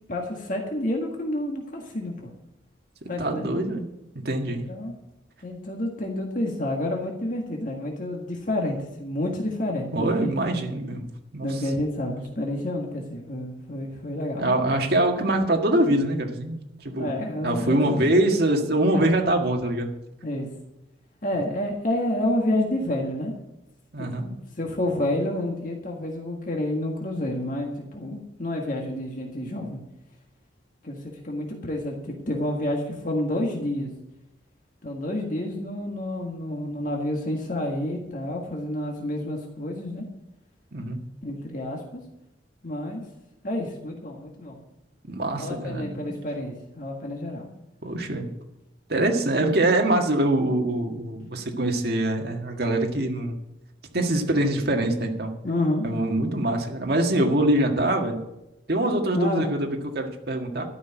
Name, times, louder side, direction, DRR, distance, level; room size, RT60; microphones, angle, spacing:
voice 1, 0.1-2.3 3.1-3.4 4.5-4.9 5.4-10.4 11.4-14.5 15.2-15.3 17.0-18.0 18.8-19.0 20.2-20.5 21.2-23.3 24.0-29.8 30.8-33.9 34.8-40.0 41.2-42.0 42.6-43.0 43.4-44.6 45.4-47.5 55.4-56.3 59.1-59.5, left 1 dB, 45° left, 1 dB, 1.7 m, -29 dB
voice 2, 3.2-3.8 4.3-4.7 9.9-11.5 14.4-16.6 16.8-17.1 17.4-19.9 23.9-24.2 40.7-41.0 45.1-46.1 47.8-48.3 48.9-53.4 53.9-55.3 55.8-58.2 58.7-60.6, right 1 dB, 55° right, 2 dB, 1.8 m, -24 dB
12.5 x 6.1 x 9.2 m, 0.92 s
head